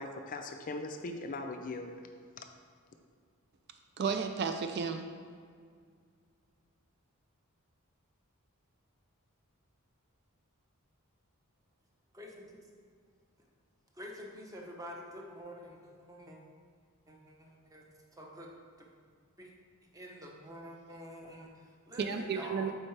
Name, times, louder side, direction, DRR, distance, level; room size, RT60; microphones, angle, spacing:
voice 1, 0.0-1.9 2.4-2.5, left 2 dB, 40° left, 5 dB, 0.4 m, -40 dB
voice 2, 4.0-5.1 22.0-22.7, right 5 dB, 50° right, 6 dB, 0.4 m, -33 dB
voice 3, 12.1-12.6 13.9-16.4 17.1-17.9 18.2-18.5 19.4-19.5 19.9-22.7, equal, 15° right, -1 dB, 0.8 m, -47 dB
8.4 x 4.4 x 3.3 m, 2.1 s
head